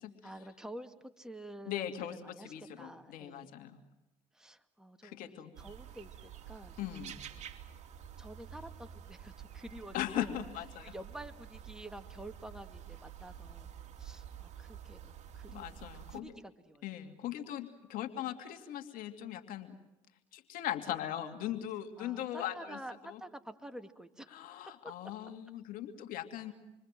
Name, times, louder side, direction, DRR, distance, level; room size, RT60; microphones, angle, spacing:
voice 1, 0.2-3.5 4.3-6.8 7.3-7.5 8.2-10.4 10.8-17.0 22.0-24.5 24.8-24.9, right 1 dB, 5° right, 7 dB, 2.2 m, -49 dB
voice 2, 1.7-2.1 2.4-3.8 5.0-5.5 6.8-7.2 9.9-10.9 15.5-16.3 16.8-19.7 20.3-22.8 23.0-23.2 24.3-26.5, left 12 dB, 70° left, 6 dB, 2.7 m, -39 dB
sound 1, 5.5-16.2, right 9 dB, 50° right, 2.8 m, -49 dB
28.5 x 24.0 x 7.6 m, 0.98 s
supercardioid pair, 90°, 15 cm